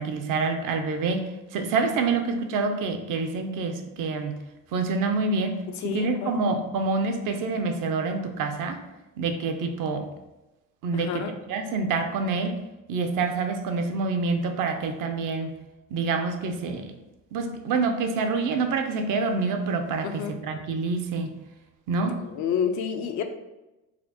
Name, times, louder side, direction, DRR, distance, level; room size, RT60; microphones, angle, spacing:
voice 1, 0.0-4.4 4.7-5.6 5.9-8.8 9.2-10.1 10.8-12.6 12.9-15.6 15.9-16.9 17.3-21.3 21.9-22.2, right 4 dB, 55° right, 5 dB, 0.6 m, -27 dB
voice 2, 5.8-6.4 10.9-11.3 20.0-20.3 22.1-23.2, left 7 dB, 50° left, 6 dB, 0.5 m, -29 dB
4.1 x 2.0 x 2.8 m, 1.0 s
supercardioid pair, 75°, 38 cm